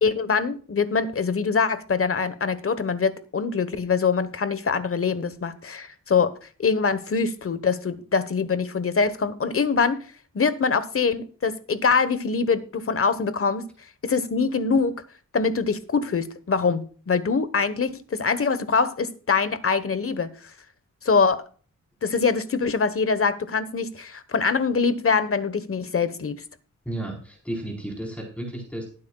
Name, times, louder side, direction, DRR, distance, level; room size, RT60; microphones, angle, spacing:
voice 1, 0.0-6.3 6.6-10.0 10.3-13.6 14.0-15.0 15.3-20.3 21.0-21.4 22.0-26.4, left 5 dB, 45° left, 1.3 m, -24 dB
voice 2, 26.8-28.9, right 1 dB, 5° left, 4.4 m, -33 dB
19.0 x 9.4 x 2.4 m
wide cardioid pair, 105°, 31 cm